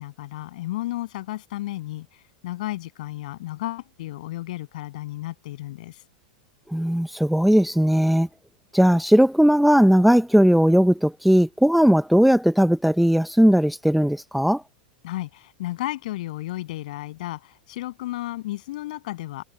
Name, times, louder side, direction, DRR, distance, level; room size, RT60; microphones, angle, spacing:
voice 1, 0.0-6.0 15.0-19.4, left 16 dB, 70° left, 7.8 m, -33 dB
voice 2, 6.7-8.3 8.7-14.6, equal, ahead, 0.6 m, -18 dB
hypercardioid pair, 120°, 4 cm